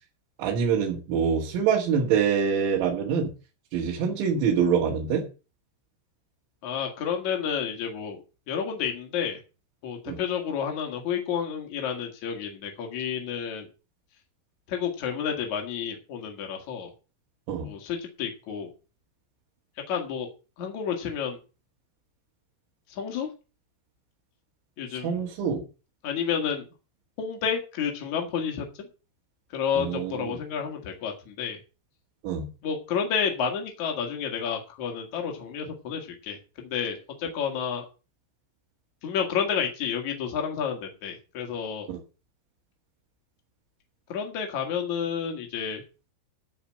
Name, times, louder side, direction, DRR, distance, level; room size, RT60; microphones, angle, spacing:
voice 1, 0.4-3.3 3.7-5.3 10.1-10.2 17.5-17.7 25.0-25.6 29.8-30.4 32.2-32.5 41.9-42.0, right 7 dB, 70° right, -3 dB, 4.0 m, -25 dB
voice 2, 6.6-8.2 8.5-9.4 9.8-13.7 14.7-16.9 17.6-18.7 19.9-20.3 20.6-21.4 22.9-23.3 24.8-25.2 26.0-26.6 27.2-28.9 29.5-31.6 32.6-37.8 39.0-41.9 44.1-45.8, left 7 dB, 60° left, 2 dB, 2.1 m, -30 dB
13.0 x 4.9 x 7.4 m, 0.33 s
omnidirectional pair, 5.8 m